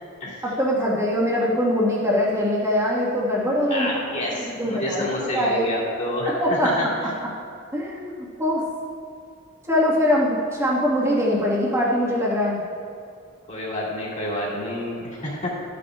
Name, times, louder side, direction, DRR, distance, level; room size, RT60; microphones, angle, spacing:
voice 1, 0.4-4.0 4.4-5.7 6.3-6.9 7.7-8.6 9.7-12.6, left 1 dB, 15° right, -6 dB, 1.6 m, -22 dB
voice 2, 3.7-7.1 13.5-15.5, left 1 dB, 35° left, -6 dB, 2.2 m, -28 dB
13.0 x 8.6 x 2.4 m, 2.3 s
head